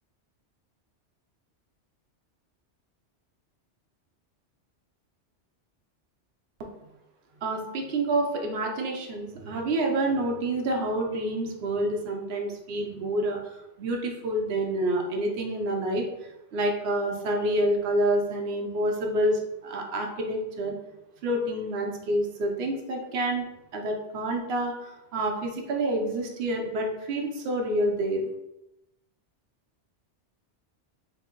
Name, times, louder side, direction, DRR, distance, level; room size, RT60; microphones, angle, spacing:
voice 1, 7.4-16.0 16.5-20.7 21.2-23.5 23.7-28.3, right 1 dB, 60° right, 1 dB, 0.9 m, -28 dB
4.9 x 2.7 x 2.9 m, 0.91 s
omnidirectional pair, 1.2 m